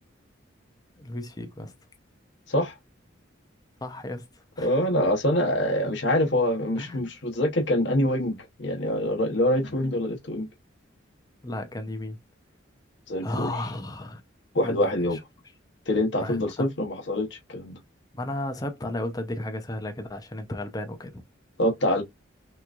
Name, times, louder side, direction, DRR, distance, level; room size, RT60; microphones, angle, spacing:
voice 1, 1.0-1.7 3.8-4.2 4.6-4.7 6.8-7.1 11.4-12.2 13.2-14.2 14.6-15.2 16.2-16.7 18.1-21.2, left 1 dB, 20° left, 0.6 m, -34 dB
voice 2, 4.6-10.5 13.1-13.5 14.5-15.2 15.9-17.8 21.6-22.0, left 1 dB, 60° left, 0.9 m, -25 dB
3.5 x 3.0 x 2.4 m
head